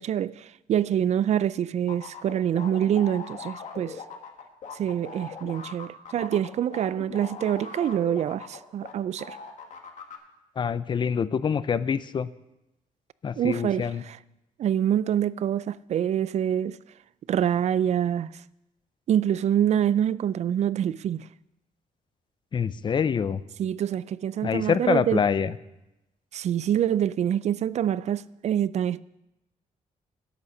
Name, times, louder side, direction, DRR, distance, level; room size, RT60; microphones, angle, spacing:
voice 1, 0.0-4.0 4.7-9.4 13.4-14.2 14.6-16.8 17.3-18.3 19.1-21.3 23.6-25.2 26.3-29.0, right 10 dB, 55° right, 0.4 m, -26 dB
sound 1, 1.9-8.9 9.2-10.2, left 5 dB, 60° left, 1.7 m, -40 dB
voice 2, 10.6-12.3 13.2-14.0 22.5-23.4 24.4-25.5, left 6 dB, 35° left, 0.5 m, -25 dB
11.0 x 8.6 x 6.5 m
cardioid pair, 115°, 14 cm